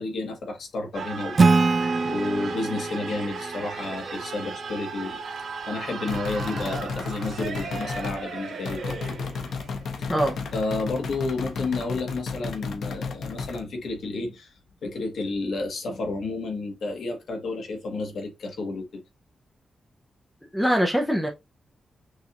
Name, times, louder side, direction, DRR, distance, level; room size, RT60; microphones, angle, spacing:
voice 1, 0.0-1.8 2.0-5.2 5.7-8.8 10.0-10.1 10.5-14.5 14.8-19.0, left 3 dB, 70° left, 1.2 m, -31 dB
sound 1, 0.9-11.8, right 5 dB, 80° right, 1.7 m, -37 dB
Acoustic guitar / Strum, 1.4-4.8, right 3 dB, 35° right, 0.5 m, -24 dB
sound 2, 6.1-8.2 8.6-13.6, left 5 dB, 85° left, 0.8 m, -33 dB
voice 2, 20.5-21.3, equal, 5° left, 0.6 m, -22 dB
6.2 x 2.5 x 2.9 m
wide cardioid pair, 160°, 0 cm